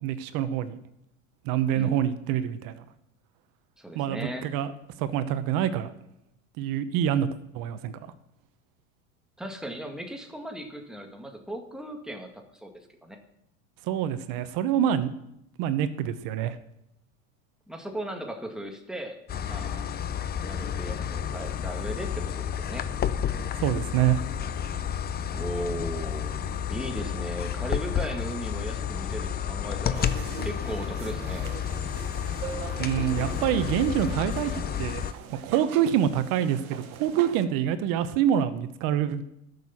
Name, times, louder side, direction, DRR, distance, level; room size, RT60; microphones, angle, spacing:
voice 1, 0.0-0.8 1.4-2.8 3.9-4.7 5.0-5.9 6.6-7.3 7.5-7.9 13.8-15.1 15.6-16.6 23.6-24.2 32.8-35.0 35.3-39.3, right 10 dB, 55° right, 12 dB, 1.0 m, -26 dB
voice 2, 3.8-4.5 9.4-12.7 13.0-13.2 17.7-19.2 19.4-19.9 20.4-22.9 25.3-26.3 26.7-30.1 30.4-31.5, right 1 dB, ahead, 3 dB, 1.9 m, -37 dB
sound 1, 19.3-35.1, left 8 dB, 25° left, 0.7 m, -31 dB
sound 2, 29.9-37.5, right 9 dB, 90° right, 1.1 m, -41 dB
12.0 x 6.7 x 7.2 m, 0.81 s
hypercardioid pair, 100°, 42 cm